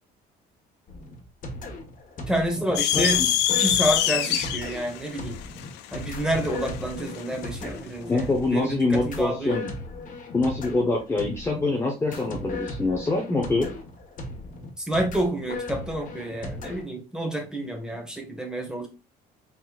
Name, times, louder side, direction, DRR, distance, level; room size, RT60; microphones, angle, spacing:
sound 1, 0.9-16.8, left 2 dB, 50° left, 1.4 m, -37 dB
voice 1, 2.3-5.4 5.9-9.6 14.8-18.9, right 1 dB, 5° right, 2 dB, 1.5 m, -29 dB
sound 2, 2.8-7.3, left 12 dB, 90° left, 0.5 m, -25 dB
voice 2, 2.9-3.3 8.0-9.7 10.3-13.7, left 2 dB, 15° left, 1 dB, 0.9 m, -25 dB
4.2 x 4.1 x 2.4 m, 0.29 s
cardioid pair, 110°, 17 cm